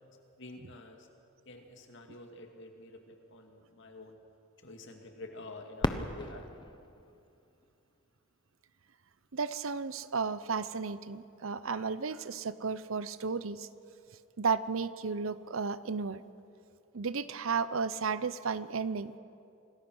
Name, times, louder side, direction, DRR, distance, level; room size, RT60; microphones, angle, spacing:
voice 1, 0.4-1.1 1.5-4.2 4.6-6.6, left 2 dB, 60° left, 4 dB, 2.4 m, -49 dB
Fireworks, 5.8-8.6 9.3-9.4 10.0-10.5 12.4-12.5, left 1 dB, 20° left, 0.9 m, -38 dB
voice 2, 9.3-13.7 14.4-16.2 16.9-19.2, right 5 dB, 65° right, 15 dB, 0.7 m, -33 dB
27.0 x 19.0 x 6.3 m, 2.6 s
head